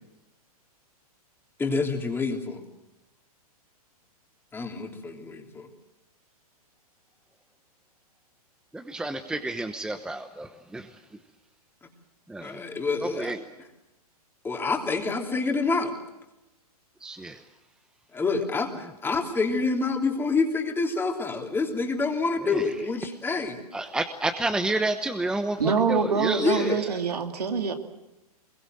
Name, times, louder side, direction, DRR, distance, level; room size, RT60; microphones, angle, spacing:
voice 1, 1.6-2.6 4.5-5.7 12.4-13.4 14.4-15.9 18.1-23.6 26.4-26.8, left 4 dB, 10° left, 2 dB, 3.1 m, -27 dB
voice 2, 8.7-10.9 12.3-12.6 13.0-13.4 17.0-17.4 22.5-22.6 23.7-26.6, right 2 dB, 5° right, 7 dB, 1.0 m, -30 dB
voice 3, 25.6-27.7, right 5 dB, 85° right, 5 dB, 2.8 m, -25 dB
23.5 x 22.0 x 7.7 m, 0.97 s
hypercardioid pair, 125°, 20 cm